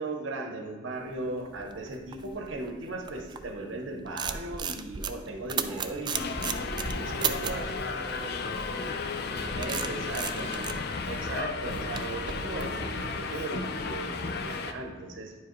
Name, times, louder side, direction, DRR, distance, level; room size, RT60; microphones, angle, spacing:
voice 1, 0.0-7.7 9.6-10.7 11.1-15.4, right 2 dB, 80° right, 4 dB, 0.9 m, -37 dB
sound 1, 1.2-3.6 3.9-7.7 8.9-13.4, right 7 dB, 25° right, 0.3 m, -35 dB
voice 2, 5.6-6.4 7.0-10.9, equal, ahead, -5 dB, 0.8 m, -46 dB
Subway metro underground, 6.1-14.7, left 4 dB, 55° left, 0.5 m, -34 dB
9.7 x 4.8 x 3.1 m, 1.5 s
head